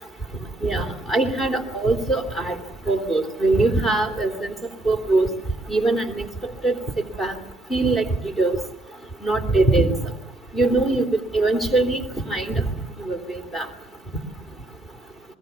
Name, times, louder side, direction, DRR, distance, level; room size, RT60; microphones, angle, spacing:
voice 1, 0.6-2.6 2.9-4.5 4.8-5.3 5.7-6.2 6.6-6.8 7.2-7.3 7.7-8.1 8.4-8.6 9.2-9.9 10.5-11.1 11.3-12.6 13.1-13.7, right 2 dB, 10° left, 10 dB, 3.3 m, -21 dB
28.5 x 21.5 x 7.2 m, 0.90 s
supercardioid pair, 120°, 0 cm